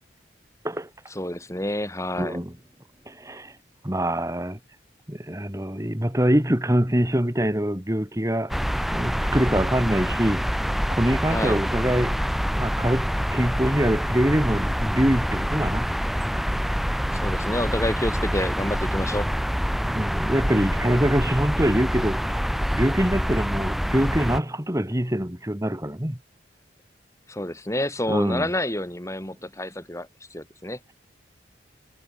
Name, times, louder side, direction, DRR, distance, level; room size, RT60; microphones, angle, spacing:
voice 1, 1.2-2.4 11.3-11.6 17.1-19.3 27.3-30.8, left 1 dB, 15° left, 4.2 m, -29 dB
voice 2, 2.2-2.5 3.1-3.6 3.8-4.6 5.1-8.5 8.9-10.4 10.9-12.2 12.6-15.9 19.8-22.4 22.7-26.2 28.1-28.5, equal, 15° right, 2.2 m, -24 dB
sound 1, 8.5-24.4, equal, ahead, 3.2 m, -26 dB
head